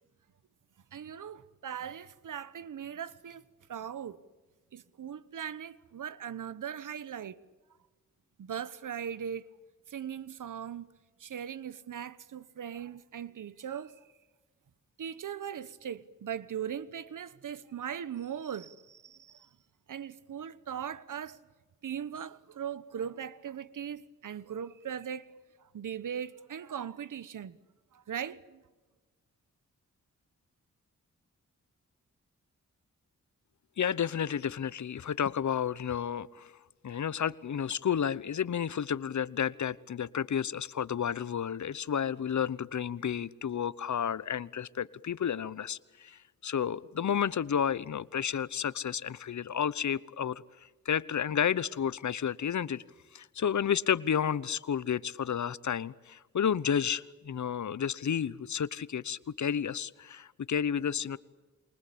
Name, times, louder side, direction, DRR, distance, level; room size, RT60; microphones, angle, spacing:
voice 1, 0.9-3.4 3.7-4.2 4.7-7.4 8.4-9.5 9.9-10.9 11.2-14.0 15.0-19.5 19.9-21.4 21.8-25.3 25.7-27.6 27.9-28.6, right 8 dB, 75° right, 1.2 m, -39 dB
voice 2, 33.8-36.5 36.8-50.4 50.8-52.8 53.1-61.2, left 8 dB, 65° left, 0.9 m, -31 dB
28.0 x 24.0 x 8.6 m
cardioid pair, 60°, 31 cm